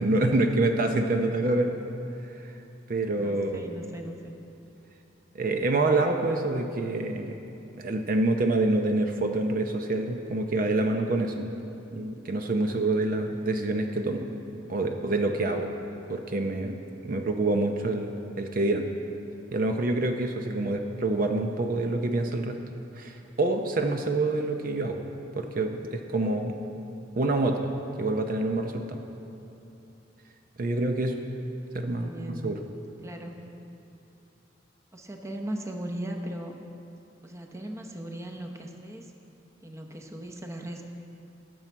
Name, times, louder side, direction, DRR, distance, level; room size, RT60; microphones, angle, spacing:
voice 1, 0.0-1.9 2.9-3.8 5.3-7.3 7.7-11.5 11.9-14.3 14.7-15.7 16.1-16.7 17.0-18.9 19.5-22.6 23.0-25.0 25.4-26.5 27.1-27.7 28.0-29.0 30.6-31.2 31.7-32.1 32.4-32.6, right 2 dB, 50° right, 4 dB, 0.7 m, -26 dB
voice 2, 3.2-4.4 15.9-16.1 20.5-20.8 31.8-32.7 33.0-33.5 34.9-36.5 37.2-39.1 39.6-40.8, right 1 dB, 15° right, 3 dB, 0.8 m, -38 dB
18.0 x 7.2 x 4.5 m, 2.8 s
head